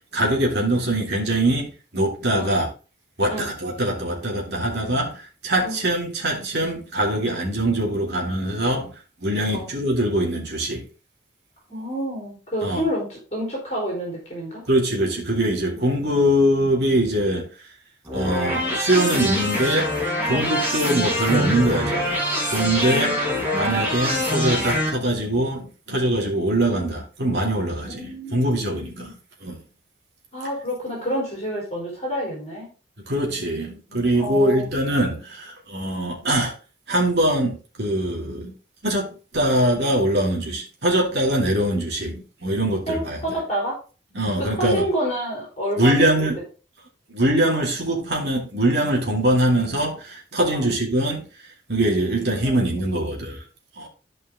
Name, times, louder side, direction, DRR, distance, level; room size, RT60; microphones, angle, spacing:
voice 1, 0.1-2.7 3.2-8.9 9.2-10.8 12.6-12.8 14.7-17.5 18.1-19.9 20.3-22.2 22.5-23.1 23.5-29.6 33.1-36.5 36.9-38.5 38.8-43.3 44.1-44.8 45.8-46.4 47.1-51.2 51.7-53.4 53.8-53.9, right 1 dB, 70° right, 2.6 m, -23 dB
voice 2, 11.7-14.6 20.3-20.5 22.8-23.2 27.9-29.1 30.3-32.7 34.1-34.7 42.9-43.8 44.4-46.3 50.5-50.7 52.4-53.1, equal, 40° left, 4.0 m, -29 dB
sound 1, 18.0-24.9, equal, 10° right, 3.1 m, -24 dB
12.0 x 5.3 x 3.6 m
head